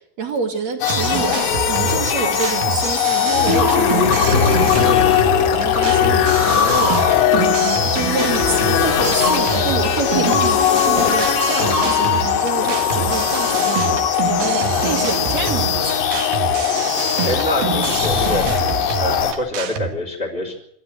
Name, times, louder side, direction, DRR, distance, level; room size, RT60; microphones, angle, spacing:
voice 1, 0.0-1.4 1.7-16.1, right 6 dB, 40° right, 4 dB, 2.9 m, -27 dB
sound 1, 0.8-19.3, left 8 dB, 65° left, 4.1 m, -19 dB
sound 2, 0.9-19.9, right 8 dB, 60° right, 2.9 m, -27 dB
voice 2, 17.2-18.4 19.0-20.5, left 1 dB, 15° left, -5 dB, 2.4 m, -25 dB
26.0 x 13.0 x 8.0 m, 0.72 s
omnidirectional pair, 5.6 m